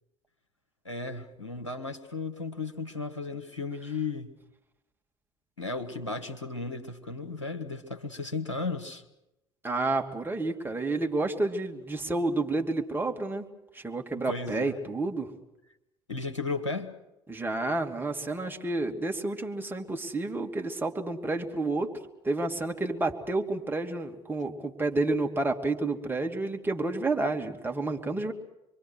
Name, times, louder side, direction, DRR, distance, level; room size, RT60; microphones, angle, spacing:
voice 1, 0.8-4.3 5.6-9.0 14.3-14.8 16.1-16.9, left 3 dB, 90° left, 5 dB, 1.3 m, -35 dB
voice 2, 9.6-13.4 13.7-15.3 17.3-21.9 22.2-28.3, right 2 dB, 15° right, 2 dB, 2.7 m, -30 dB
26.5 x 23.0 x 6.5 m, 0.91 s
figure-of-eight pair, 60°, 15 cm